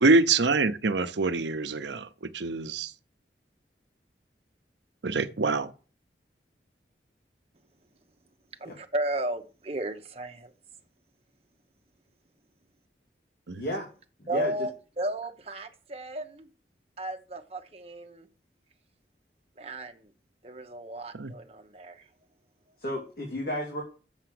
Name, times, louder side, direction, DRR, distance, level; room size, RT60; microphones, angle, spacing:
voice 1, 0.0-2.9 5.0-5.7 13.5-13.6 21.1-21.3, right 3 dB, 85° right, 0.8 m, -25 dB
voice 2, 8.6-10.5 14.3-16.5 17.0-18.3 19.6-20.1 20.4-22.1, right 1 dB, 35° right, 1.1 m, -34 dB
voice 3, 13.6-13.9 14.2-14.5 22.8-23.8, left 1 dB, 55° left, 2.6 m, -32 dB
7.4 x 5.9 x 7.7 m
head